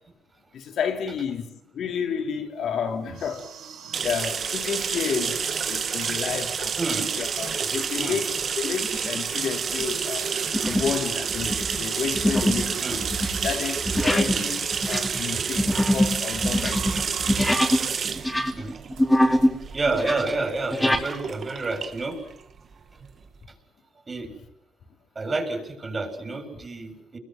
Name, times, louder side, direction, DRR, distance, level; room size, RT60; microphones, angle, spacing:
voice 1, 0.5-3.4 4.0-6.8 7.2-10.3 10.7-13.0 13.4-17.2 17.6-17.7, left 7 dB, 65° left, 4.7 m, -31 dB
sound 1, 2.7-18.4 18.8-19.1 19.4-19.5 19.8-20.1, right 7 dB, 85° right, 4.6 m, -41 dB
sound 2, 3.9-23.4, right 6 dB, 50° right, 2.2 m, -30 dB
voice 2, 6.8-7.1 8.0-8.2 12.8-13.0 14.2-14.4 18.5-18.8 19.7-22.2 24.1-24.3 25.2-27.2, right 3 dB, 30° right, 7.4 m, -29 dB
sound 3, 8.8-9.2 9.7-9.9 10.5-11.0 11.3-17.9 18.2-19.6 19.9-21.1, equal, 5° left, 3.8 m, -24 dB
30.0 x 22.5 x 7.9 m
cardioid pair, 90°, 0 cm